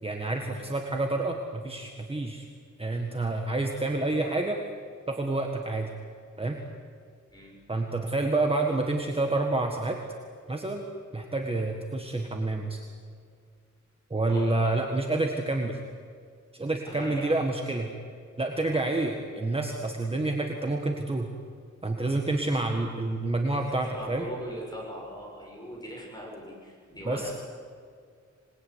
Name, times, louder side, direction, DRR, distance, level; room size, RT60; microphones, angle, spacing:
voice 1, 0.0-2.4 2.8-4.6 5.1-5.9 6.4-6.6 7.7-10.0 10.5-10.8 11.1-12.8 14.1-15.8 16.6-17.9 18.4-21.3 21.8-24.2 27.0-27.3, right 2 dB, 20° right, 2 dB, 1.7 m, -28 dB
voice 2, 14.3-14.7 16.8-17.3 18.7-18.9 23.5-27.3, equal, 15° left, -2 dB, 6.8 m, -40 dB
26.5 x 20.5 x 9.6 m, 2.2 s
wide cardioid pair, 175°, 30 cm